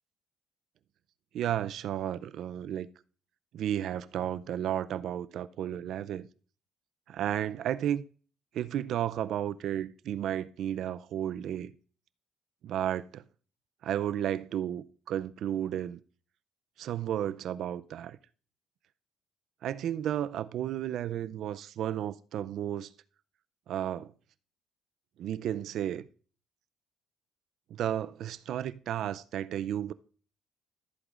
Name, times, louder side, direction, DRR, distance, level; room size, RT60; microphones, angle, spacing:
voice 1, 1.3-2.9 3.5-6.3 7.1-8.0 8.5-11.7 12.6-13.2 13.8-16.0 16.8-18.2 19.6-22.9 23.7-24.1 25.2-26.0 27.7-29.9, right 10 dB, 60° right, 0.4 m, -33 dB
14.5 x 8.1 x 2.4 m
cardioid pair, 130°, 0 cm